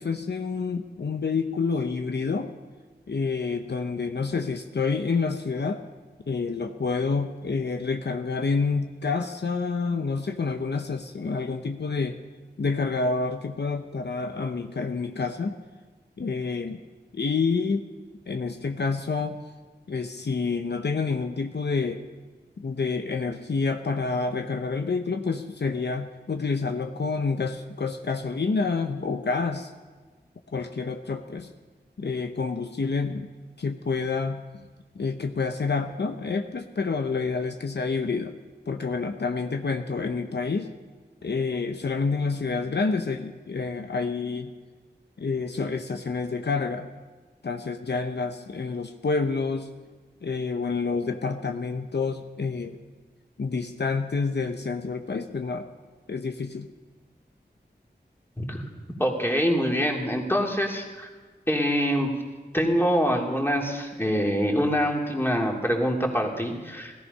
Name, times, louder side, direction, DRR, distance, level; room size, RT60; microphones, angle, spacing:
voice 1, 0.0-2.5 3.1-5.8 6.3-12.2 12.6-15.6 16.2-16.8 17.1-17.9 18.3-19.4 19.9-22.0 22.6-29.7 30.5-31.5 32.0-33.3 33.6-34.4 35.0-38.3 38.7-40.7 41.2-44.5 45.2-46.9 47.4-49.7 50.2-52.8 53.4-55.7 56.1-56.7, left 4 dB, 75° left, 6 dB, 0.8 m, -28 dB
voice 2, 59.0-61.1 61.5-62.2 62.5-66.9, equal, 15° left, -1 dB, 2.9 m, -25 dB
17.5 x 14.0 x 5.5 m, 1.4 s
wide cardioid pair, 50°, 18 cm